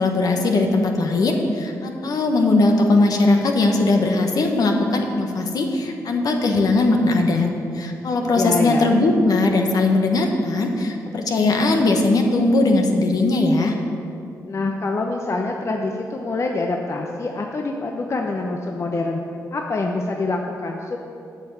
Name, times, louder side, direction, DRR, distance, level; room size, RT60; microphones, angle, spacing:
voice 1, 0.0-13.7, left 2 dB, 65° left, 3 dB, 1.3 m, -19 dB
voice 2, 8.3-9.0 14.5-19.2 19.5-21.1, left 3 dB, 45° left, 2 dB, 0.8 m, -25 dB
8.9 x 5.9 x 7.8 m, 2.6 s
cardioid pair, 65°, 7 cm